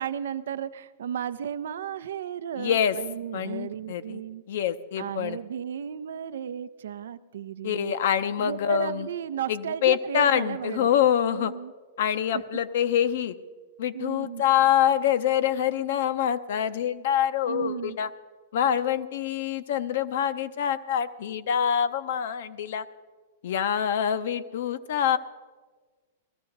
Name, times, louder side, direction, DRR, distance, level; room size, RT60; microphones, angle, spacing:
voice 1, 0.0-4.4 5.0-7.9 8.4-10.9 11.3-11.7 12.3-12.4 13.9-14.4 17.5-18.0, right 9 dB, 80° right, 13 dB, 0.5 m, -34 dB
voice 2, 2.6-3.0 3.3-4.2 4.5-5.4 7.6-9.1 9.5-11.5 12.0-13.3 13.8-18.1 18.5-22.8 23.4-25.2, left 9 dB, 70° left, 12 dB, 0.7 m, -25 dB
18.0 x 13.5 x 3.9 m, 1.4 s
hypercardioid pair, 130°, 0 cm